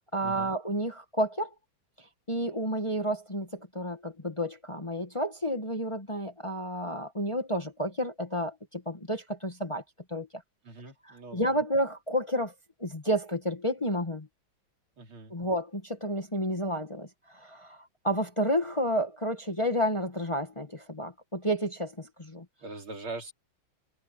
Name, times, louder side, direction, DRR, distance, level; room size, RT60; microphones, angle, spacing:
voice 1, 0.1-1.5 2.3-9.8 10.1-10.4 11.0-12.5 12.8-14.3 15.3-22.4, equal, 15° left, 1.3 m, -31 dB
voice 2, 10.6-11.6 15.0-15.3 22.6-23.3, right 2 dB, 90° right, 4.6 m, -42 dB
omnidirectional pair, 2.2 m